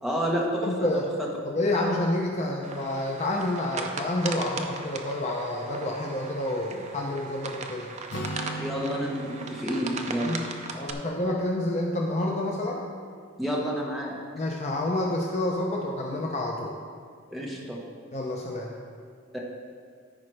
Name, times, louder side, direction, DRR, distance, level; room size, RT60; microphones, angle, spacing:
voice 1, 0.0-0.7 1.2-1.4 8.6-10.4 13.4-14.2 17.3-17.8 19.3-19.4, equal, ahead, -4 dB, 1.1 m, -29 dB
voice 2, 0.6-1.1 1.5-7.9 10.2-12.8 14.3-16.7 18.1-18.7, left 1 dB, 35° left, 0 dB, 0.6 m, -29 dB
sound 1, 2.6-10.9, right 4 dB, 35° right, 0.5 m, -38 dB
Acoustic guitar, 8.1-11.8, right 1 dB, 55° left, 0.9 m, -39 dB
13.5 x 5.0 x 3.3 m, 2.1 s
head